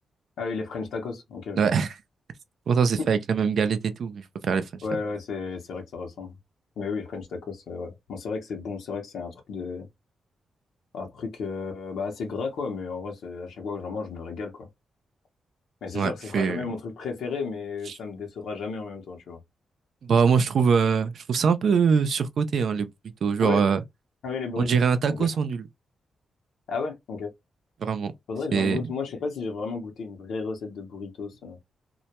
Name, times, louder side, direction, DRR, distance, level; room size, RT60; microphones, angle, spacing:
voice 1, 0.4-1.6 3.0-3.1 4.8-6.3 6.8-9.9 10.9-14.7 15.8-19.4 23.4-23.7 24.2-24.8 25.1-25.3 26.7-27.3 28.3-31.6, left 4 dB, 80° left, 0.7 m, -33 dB
voice 2, 1.6-1.9 2.7-4.8 15.9-16.7 20.0-22.9 23.2-23.8 24.6-25.6 27.8-28.1 28.5-28.8, right 6 dB, 70° right, 0.4 m, -23 dB
2.2 x 2.1 x 2.8 m
cardioid pair, 60°, 0 cm